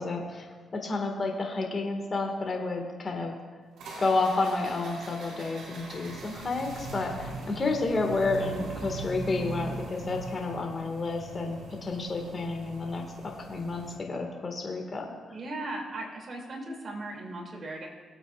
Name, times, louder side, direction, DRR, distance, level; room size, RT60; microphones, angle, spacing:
voice 1, 0.0-3.4 4.0-15.1, left 3 dB, 40° left, 2 dB, 1.9 m, -30 dB
sound 1, 3.8-13.9, right 2 dB, 80° right, 3.4 m, -41 dB
voice 2, 15.3-17.9, right 2 dB, 45° right, 0 dB, 2.8 m, -37 dB
22.5 x 8.1 x 2.5 m, 1.5 s
cardioid pair, 75°, 0 cm